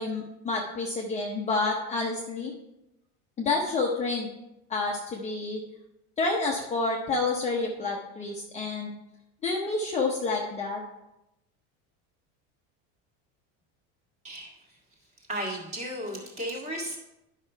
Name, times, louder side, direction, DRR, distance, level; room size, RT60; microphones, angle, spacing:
voice 1, 0.0-2.5 3.4-4.3 4.7-5.6 6.2-8.9 9.4-10.8, left 3 dB, 20° left, -1 dB, 0.7 m, -29 dB
voice 2, 15.3-17.0, equal, 20° right, -1 dB, 1.8 m, -34 dB
10.5 x 5.7 x 4.5 m, 0.92 s
cardioid pair, 175°, 35 cm